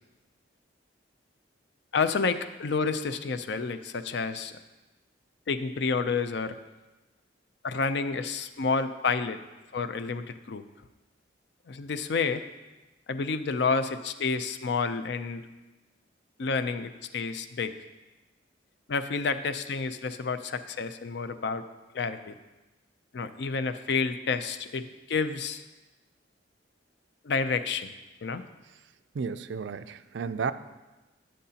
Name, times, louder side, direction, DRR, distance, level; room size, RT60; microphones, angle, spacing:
voice 1, 1.9-4.5 5.5-6.6 7.6-9.4 9.7-10.6 11.7-12.4 13.1-15.4 16.4-17.7 18.9-21.6 21.9-22.3 23.1-25.6 27.2-27.9 28.2-28.4, left 4 dB, 60° left, 10 dB, 0.5 m, -29 dB
voice 2, 29.1-30.5, right 5 dB, 65° right, 13 dB, 0.4 m, -32 dB
14.0 x 6.5 x 2.8 m, 1.1 s
head